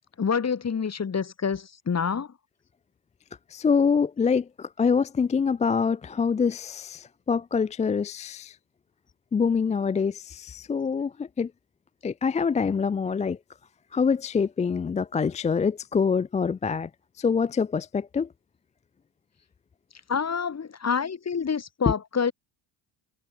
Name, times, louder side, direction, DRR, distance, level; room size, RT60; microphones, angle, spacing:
voice 1, 0.2-2.3 20.1-22.3, left 6 dB, 35° left, 2.3 m, -27 dB
voice 2, 3.5-8.5 9.3-11.1 11.4-11.5 12.0-13.4 13.9-16.9 17.2-18.3, left 5 dB, 15° left, 0.3 m, -25 dB
supercardioid pair, 75°, 47 cm